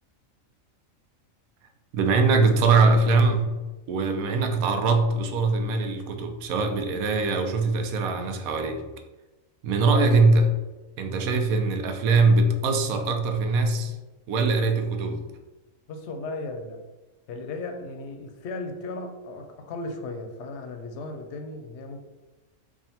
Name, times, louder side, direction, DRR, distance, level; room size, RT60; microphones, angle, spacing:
voice 1, 1.9-3.5 3.9-8.8 9.6-10.5 11.0-14.0 14.3-15.2, right 3 dB, 90° right, 5 dB, 1.1 m, -22 dB
voice 2, 15.9-16.8 17.3-22.0, left 2 dB, 65° left, 5 dB, 0.8 m, -36 dB
3.5 x 2.4 x 4.1 m, 1.1 s
omnidirectional pair, 1.4 m